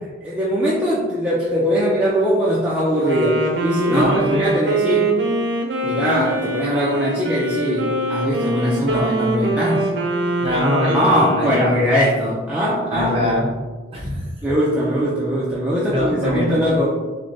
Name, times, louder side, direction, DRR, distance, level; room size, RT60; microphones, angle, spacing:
voice 1, 0.2-5.1 5.8-9.9 10.8-13.1 14.4-16.9, equal, 5° right, -7 dB, 0.5 m, -20 dB
Wind instrument woodwind instrument, 2.9-11.9, right 1 dB, 60° right, 0.6 m, -23 dB
voice 2, 3.9-4.5 8.9-9.0 10.4-11.7 12.9-13.5 13.9-14.2 15.9-16.5, equal, 30° right, -4 dB, 1.0 m, -22 dB
6.0 x 2.2 x 2.7 m, 1.3 s
head